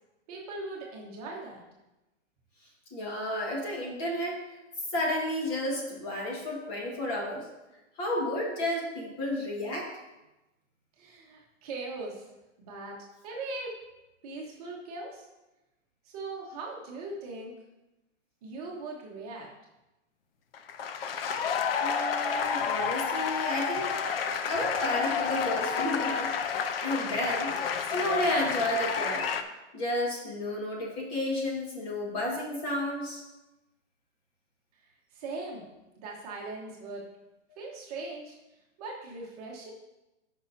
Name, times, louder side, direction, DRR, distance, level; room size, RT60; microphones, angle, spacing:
voice 1, 0.3-1.6 11.0-12.3 12.6-13.7 14.2-15.3 16.0-17.6 18.4-19.5 35.1-35.6 36.0-37.1 37.6-38.4 38.8-39.7, right 3 dB, 30° right, -2 dB, 1.2 m, -40 dB
voice 2, 2.9-4.4 4.9-7.5 8.0-9.9 21.8-23.9 24.4-26.3 26.8-27.5 27.9-29.3 29.7-33.2, left 1 dB, 25° left, -2 dB, 1.6 m, -31 dB
sound 1, 20.5-29.4, left 6 dB, 50° left, 0.6 m, -30 dB
13.0 x 5.6 x 2.7 m, 1.0 s
hypercardioid pair, 165°, 37 cm